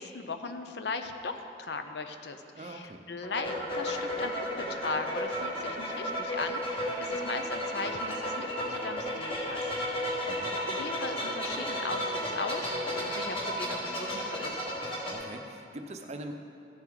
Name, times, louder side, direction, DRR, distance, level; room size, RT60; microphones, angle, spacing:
voice 1, 0.0-9.7 10.2-14.6, left 3 dB, 65° left, 7 dB, 0.7 m, -38 dB
voice 2, 2.5-3.0 10.3-10.5 15.1-16.3, right 1 dB, 35° right, 5 dB, 0.6 m, -42 dB
sound 1, 3.2-15.1, equal, 30° left, 1.7 m, -33 dB
14.0 x 7.5 x 3.9 m, 2.7 s
head